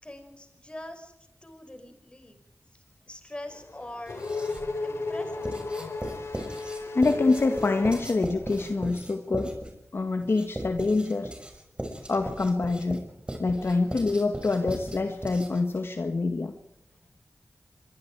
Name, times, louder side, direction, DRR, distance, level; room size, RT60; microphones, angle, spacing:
voice 1, 0.0-1.1 1.4-2.4 3.1-4.2 4.8-5.8, left 1 dB, 25° left, 7 dB, 5.6 m, -43 dB
Race car auto racing / Accelerating revving vroom, 3.5-8.8, left 3 dB, 85° left, 4.8 m, -34 dB
Writing, 4.1-4.8 5.4-15.8, right 1 dB, 20° right, 6.1 m, -38 dB
voice 2, 6.9-9.5 9.9-11.3 12.1-13.0 13.4-16.5, left 3 dB, 60° left, 6 dB, 1.9 m, -26 dB
25.5 x 24.0 x 4.9 m, 0.79 s
wide cardioid pair, 65°, 4 cm